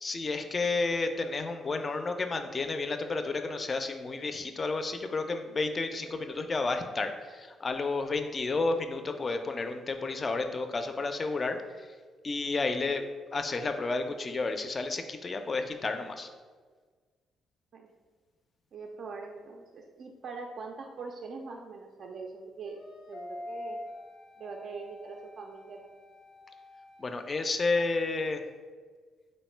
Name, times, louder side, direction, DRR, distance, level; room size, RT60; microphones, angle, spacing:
voice 1, 0.0-11.9 12.2-13.1 13.3-16.3 27.0-28.4, left 3 dB, 35° left, 7 dB, 0.3 m, -31 dB
voice 2, 18.7-22.8 23.1-23.8 24.4-26.0, right 4 dB, 60° right, 2 dB, 0.3 m, -42 dB
sound 1, 22.7-27.8, left 1 dB, 85° left, 0.5 m, -46 dB
3.8 x 2.1 x 4.3 m, 1.5 s
cardioid pair, 90°, 0 cm